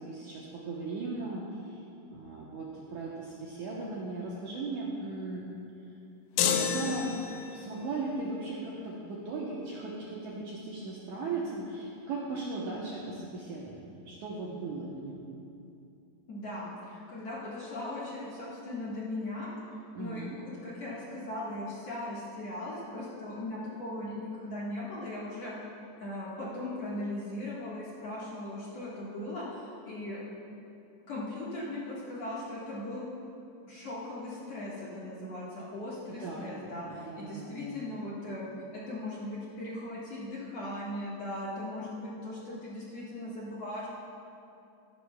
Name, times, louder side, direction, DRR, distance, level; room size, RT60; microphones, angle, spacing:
voice 1, 0.0-1.8 2.1-5.5 6.4-7.1 7.5-15.3 19.9-20.4 36.2-37.8, right 3 dB, 75° right, -5 dB, 1.8 m, -37 dB
sound 1, 6.4-7.7, left 7 dB, 85° left, 2.8 m, -29 dB
voice 2, 16.3-19.5 20.0-25.5 26.0-30.2 31.1-33.1 33.7-38.5 38.7-43.9, left 1 dB, 55° left, -8 dB, 2.0 m, -38 dB
14.5 x 12.5 x 2.3 m, 2.7 s
omnidirectional pair, 4.7 m